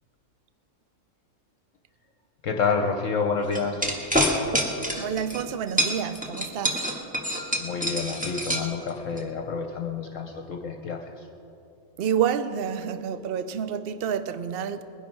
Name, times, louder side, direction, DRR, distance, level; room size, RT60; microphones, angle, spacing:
voice 1, 2.4-3.9 7.6-11.3, left 5 dB, 65° left, 4 dB, 1.1 m, -28 dB
sound 1, 3.5-5.4 5.8-9.2, equal, 5° right, 1.3 m, -26 dB
voice 2, 5.0-7.1 12.0-14.8, right 8 dB, 55° right, 11 dB, 0.7 m, -29 dB
20.5 x 11.0 x 4.5 m, 2.8 s
omnidirectional pair, 1.5 m